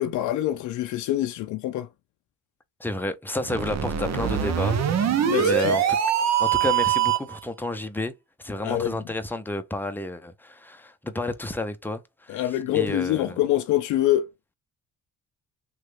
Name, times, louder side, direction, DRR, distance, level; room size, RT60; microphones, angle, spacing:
voice 1, 0.0-1.9 5.2-5.8 8.6-9.0 12.3-14.3, left 13 dB, 80° left, 0.5 m, -25 dB
voice 2, 2.8-4.8 5.1-6.0 6.4-8.1 8.4-12.4 12.7-13.4, left 1 dB, 5° left, 0.5 m, -31 dB
sound 1, 3.4-7.4, right 8 dB, 60° right, 0.7 m, -23 dB
3.0 x 2.3 x 3.2 m
cardioid pair, 90°, 30 cm